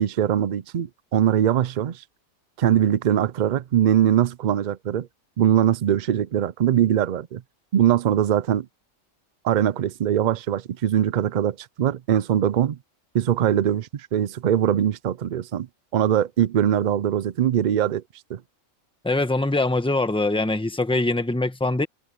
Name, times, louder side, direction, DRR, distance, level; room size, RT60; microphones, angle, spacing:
voice 1, 0.0-2.0 2.6-5.1 5.4-7.4 7.7-8.7 9.4-12.8 13.1-15.7 15.9-18.0 18.3-18.4, right 10 dB, 75° right, 0.4 m, -22 dB
voice 2, 19.0-21.9, left 2 dB, 5° left, 1.2 m, -23 dB
omnidirectional pair, 1.4 m